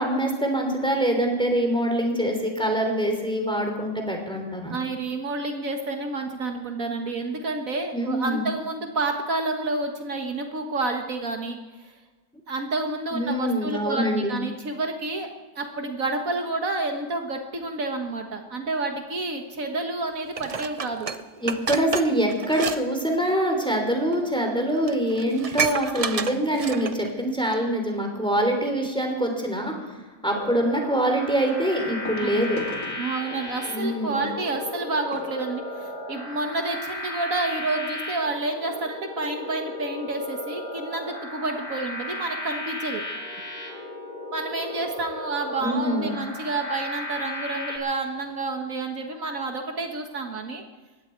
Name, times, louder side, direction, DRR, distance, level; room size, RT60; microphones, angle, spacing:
voice 1, 0.0-4.8 7.9-8.5 13.1-14.3 21.4-30.0 30.2-32.6 33.7-34.2 45.6-46.2, right 1 dB, 5° left, 2 dB, 3.3 m, -24 dB
voice 2, 4.7-11.9 12.5-15.3 15.6-21.1 22.6-22.7 25.3-25.6 27.5-27.7 32.2-32.5 33.0-43.0 44.3-50.6, right 3 dB, 65° right, 4 dB, 1.9 m, -29 dB
Dishes pots and pans, 20.4-22.8 23.1-23.3 24.1-24.2 24.6-24.7 24.9-27.1 27.5-27.6, right 5 dB, 45° right, 0.4 m, -30 dB
sound 1, 28.5-28.8 30.4-30.5 32.0-36.5 37.2-37.3 37.5-37.7 38.2-38.3, left 2 dB, 65° left, 2.5 m, -41 dB
sound 2, 30.3-47.8, left 1 dB, 35° left, 3.4 m, -35 dB
20.0 x 15.5 x 4.6 m, 1.3 s
omnidirectional pair, 1.5 m